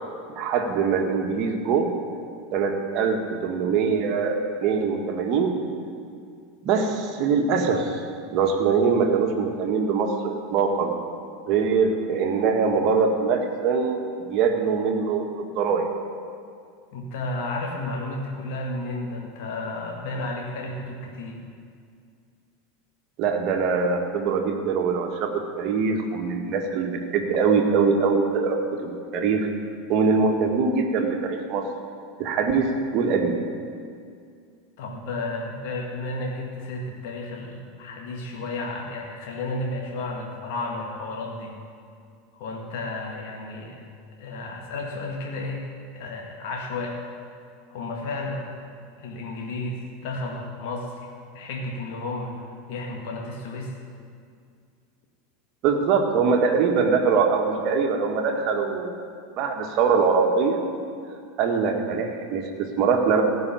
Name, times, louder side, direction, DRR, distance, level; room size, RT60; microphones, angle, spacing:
voice 1, 0.3-1.9 2.5-5.5 6.6-8.0 8.3-10.9 11.5-14.0 14.3-15.9 23.2-29.5 29.9-31.7 32.2-33.4 55.6-59.0 59.4-60.6 61.4-63.2, right 5 dB, 45° right, 3 dB, 1.7 m, -23 dB
voice 2, 16.9-21.4 34.8-41.5 42.3-43.8 44.2-45.7 45.9-47.0 47.7-48.5 49.0-52.3 52.7-53.8, left 2 dB, 55° left, 0 dB, 1.8 m, -32 dB
15.5 x 5.5 x 9.9 m, 2.3 s
figure-of-eight pair, 85°, 0 cm